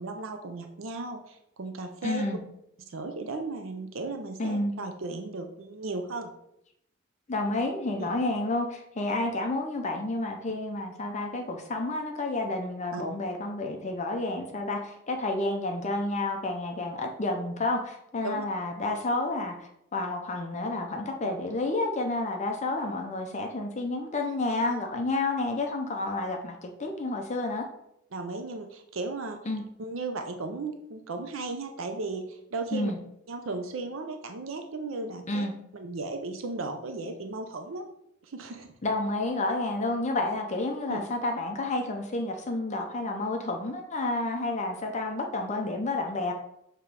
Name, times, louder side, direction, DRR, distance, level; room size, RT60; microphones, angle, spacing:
voice 1, 0.0-2.2 2.9-6.3 8.0-8.1 12.9-13.0 18.2-18.5 28.1-29.4 29.8-32.9 33.3-35.5 35.7-37.9 38.2-38.7 40.9-41.0, right 3 dB, 75° right, 5 dB, 0.6 m, -35 dB
voice 2, 2.0-2.4 4.4-4.7 7.3-27.7 29.5-29.6 32.7-33.0 35.3-35.5 38.8-46.3, left 2 dB, 35° left, 3 dB, 0.6 m, -30 dB
6.8 x 3.0 x 4.7 m, 0.78 s
head